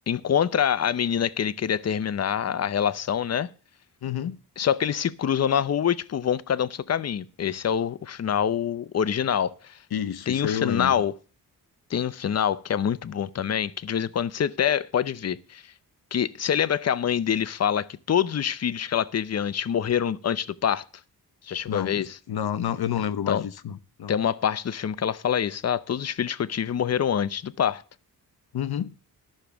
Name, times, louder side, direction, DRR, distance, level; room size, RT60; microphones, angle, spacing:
voice 1, 0.1-3.5 4.6-9.8 10.3-11.1 11.9-15.6 16.1-20.8 21.4-22.2 23.3-23.5 24.1-27.8, left 8 dB, 40° left, 0.6 m, -25 dB
voice 2, 4.0-4.4 9.9-10.9 21.7-24.2 28.5-28.9, left 9 dB, 75° left, 0.9 m, -29 dB
12.5 x 6.5 x 6.9 m
wide cardioid pair, 150°, 37 cm